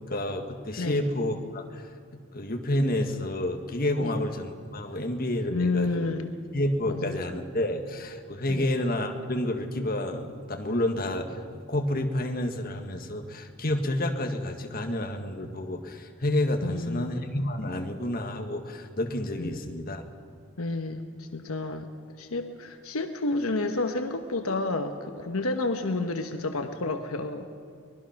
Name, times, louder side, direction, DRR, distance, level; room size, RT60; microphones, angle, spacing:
voice 1, 0.0-1.9 2.3-6.1 6.5-20.0, left 1 dB, 40° left, 4 dB, 1.7 m, -29 dB
voice 2, 0.8-1.1 4.0-4.1 5.5-6.3 6.8-7.2 8.5-8.7 16.6-17.1 19.4-19.5 20.6-21.9 22.2-27.5, left 2 dB, 75° left, 6 dB, 1.1 m, -30 dB
24.0 x 20.0 x 5.9 m, 2.2 s
head